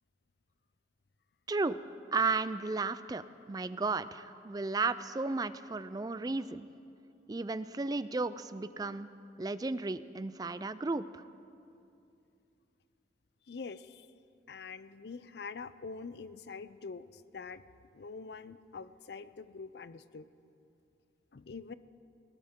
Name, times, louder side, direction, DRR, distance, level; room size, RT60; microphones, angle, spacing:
voice 1, 1.5-1.8 2.1-6.7 7.3-9.1 9.4-11.2, right 3 dB, 20° right, 14 dB, 0.4 m, -34 dB
voice 2, 13.5-14.1 14.5-17.6 17.9-20.3 21.3-21.7, left 4 dB, 65° left, 14 dB, 0.5 m, -45 dB
20.0 x 18.5 x 3.7 m, 2.6 s
head